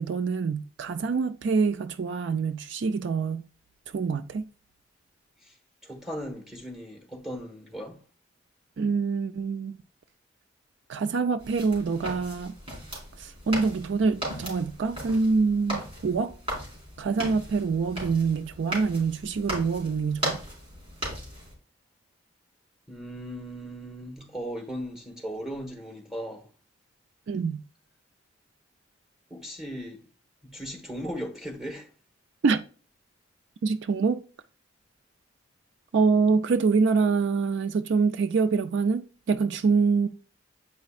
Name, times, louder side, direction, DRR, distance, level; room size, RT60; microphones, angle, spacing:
voice 1, 0.0-3.4 3.9-4.4 8.8-9.8 10.9-12.5 13.2-16.3 17.0-20.4 27.3-27.6 32.4-32.6 33.6-34.2 35.9-40.1, right 4 dB, 65° right, 0.4 m, -25 dB
voice 2, 5.8-8.0 22.9-26.5 29.3-30.0 30.4-31.9, equal, 5° right, 1.3 m, -37 dB
sound 1, 11.4-21.5, right 1 dB, 30° right, 3.6 m, -37 dB
8.3 x 5.2 x 2.4 m
head